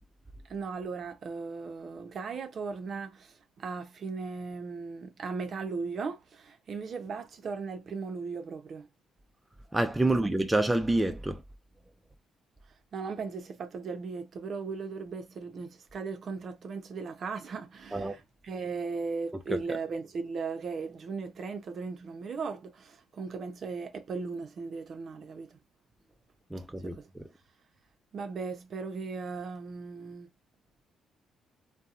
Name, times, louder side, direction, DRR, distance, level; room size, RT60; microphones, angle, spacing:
voice 1, 0.5-8.9 12.9-25.6 26.8-27.1 28.1-30.3, right 4 dB, 55° right, 0.6 m, -37 dB
voice 2, 9.7-11.4 17.9-18.1 19.5-19.6 26.5-27.0, right 2 dB, 10° right, 0.4 m, -27 dB
2.8 x 2.2 x 2.4 m
supercardioid pair, 65°, 0 cm